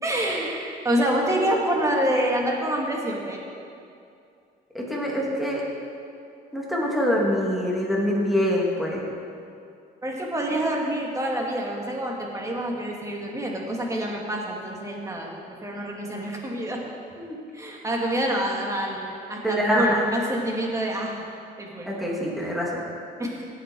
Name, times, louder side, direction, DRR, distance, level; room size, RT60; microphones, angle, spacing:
voice 1, 0.0-3.4 10.0-16.8 17.5-21.3 21.6-21.9 23.2-23.5, right 1 dB, 20° right, -1 dB, 2.4 m, -27 dB
voice 2, 4.7-5.6 6.5-9.0 17.2-17.4 19.4-20.0 21.8-22.8, equal, ahead, -4 dB, 2.9 m, -24 dB
17.5 x 8.0 x 4.7 m, 2.4 s
cardioid pair, 110°, 17 cm